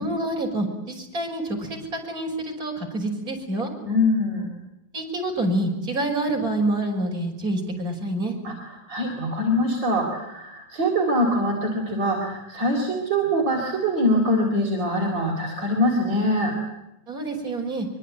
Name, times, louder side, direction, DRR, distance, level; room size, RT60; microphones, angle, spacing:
voice 1, 0.0-3.7 4.9-8.4 17.1-17.9, right 1 dB, 45° right, 2 dB, 6.3 m, -27 dB
voice 2, 3.8-4.5 8.4-16.6, equal, 65° right, 0 dB, 4.6 m, -23 dB
24.5 x 23.5 x 9.2 m, 0.89 s
omnidirectional pair, 2.1 m